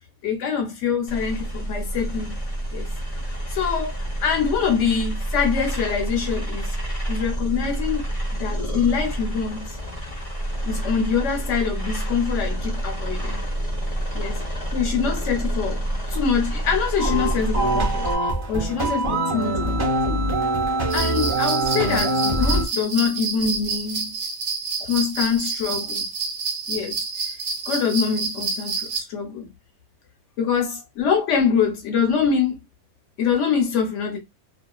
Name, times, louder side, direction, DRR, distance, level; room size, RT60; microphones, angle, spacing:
voice 1, 0.2-2.4 2.7-2.9 3.3-6.7 7.1-8.0 8.4-9.8 10.6-13.4 14.1-14.4 14.7-15.8 16.1-19.9 20.9-24.2 24.8-26.1 26.7-27.0 27.7-29.5 30.4-32.6 33.2-34.2, left 6 dB, 80° left, 1.0 m, -24 dB
sound 1, 1.1-18.2, right 1 dB, 35° left, 0.7 m, -28 dB
sound 2, 17.0-22.6, right 1 dB, 30° right, 0.8 m, -23 dB
sound 3, 20.9-29.0, right 4 dB, 75° right, 1.1 m, -28 dB
2.4 x 2.3 x 2.2 m
omnidirectional pair, 1.2 m